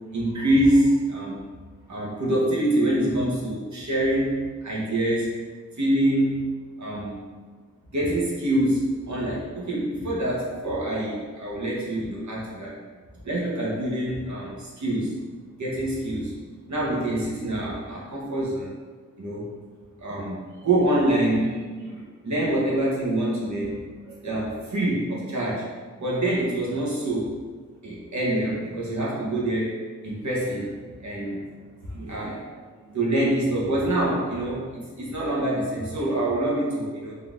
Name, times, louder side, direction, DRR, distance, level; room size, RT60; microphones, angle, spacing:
voice 1, 0.0-1.4 1.9-4.4 4.6-5.3 5.8-6.5 6.8-7.2 7.9-12.8 13.2-15.2 15.6-16.3 16.7-18.7 19.2-19.5 20.0-23.8 24.0-25.7 26.0-27.4 27.8-31.4 31.8-37.2, right 1 dB, 70° right, -6 dB, 1.2 m, -25 dB
4.1 x 2.6 x 3.6 m, 1.5 s
wide cardioid pair, 100°, 30 cm